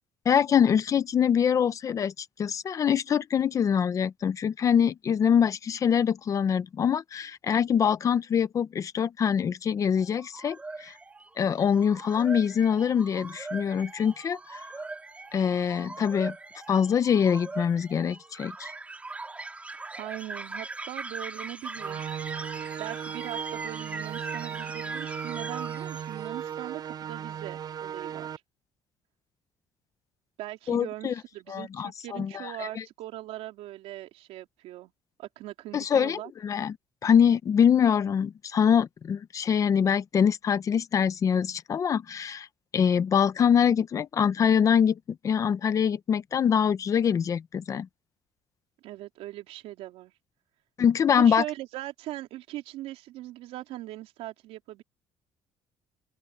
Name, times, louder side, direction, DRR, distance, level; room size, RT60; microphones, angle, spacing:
voice 1, 0.3-10.9 11.4-14.6 15.3-16.3 16.7-18.7 30.7-31.1 31.5-32.3 32.6-32.8 35.7-36.8 37.0-42.5 42.7-45.0 45.2-47.9 50.8-51.4, left 8 dB, 30° left, 0.7 m, -24 dB
sound 1, 9.9-26.5, right 3 dB, 15° right, 3.9 m, -40 dB
voice 2, 20.0-22.0 22.8-28.3 30.4-34.9 35.2-36.3 48.8-50.1 51.1-54.8, right 15 dB, 85° right, 3.8 m, -40 dB
sound 2, 21.8-28.4, right 9 dB, 40° right, 7.2 m, -36 dB
cardioid pair, 170°, 10 cm